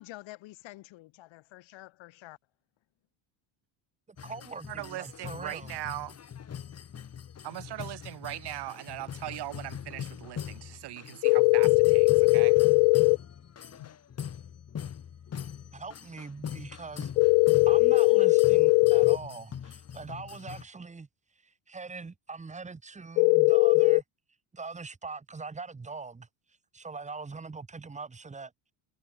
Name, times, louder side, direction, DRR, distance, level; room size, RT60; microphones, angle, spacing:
voice 1, 0.0-2.4 13.8-14.0, left 18 dB, 65° left, 7.5 m, -48 dB
voice 2, 4.1-5.8 15.7-17.1 17.7-21.1 21.4-24.0 24.5-26.3 26.7-28.5, right 4 dB, 15° right, 2.3 m, -42 dB
sound 1, 4.2-20.6, left 8 dB, 30° left, 3.0 m, -42 dB
voice 3, 4.7-6.1 7.4-12.6, right 15 dB, 50° right, 2.9 m, -39 dB
sound 2, 11.2-13.2 17.2-19.2 23.2-24.0, left 32 dB, 85° left, 1.1 m, -20 dB
cardioid pair, 145°, 49 cm